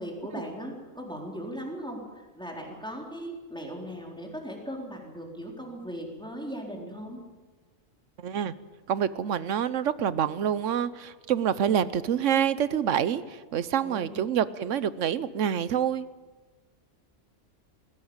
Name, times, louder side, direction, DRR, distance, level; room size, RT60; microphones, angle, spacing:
voice 1, 0.0-7.2 13.8-14.2, equal, 5° left, 0 dB, 4.0 m, -38 dB
voice 2, 8.2-8.5 8.9-16.1, right 9 dB, 75° right, 16 dB, 1.2 m, -27 dB
19.5 x 17.0 x 8.8 m, 1.3 s
omnidirectional pair, 1.3 m